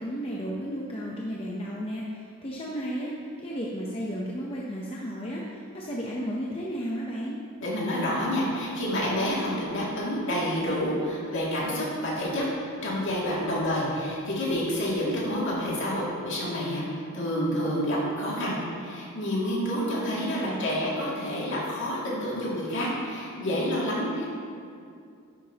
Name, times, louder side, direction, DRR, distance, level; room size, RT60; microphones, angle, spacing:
voice 1, 0.0-3.1 3.4-7.4 20.1-20.7, equal, 25° left, -4 dB, 0.7 m, -33 dB
voice 2, 7.6-12.5 12.8-24.3, equal, 55° left, -6 dB, 2.3 m, -28 dB
11.0 x 8.1 x 2.9 m, 2.4 s
head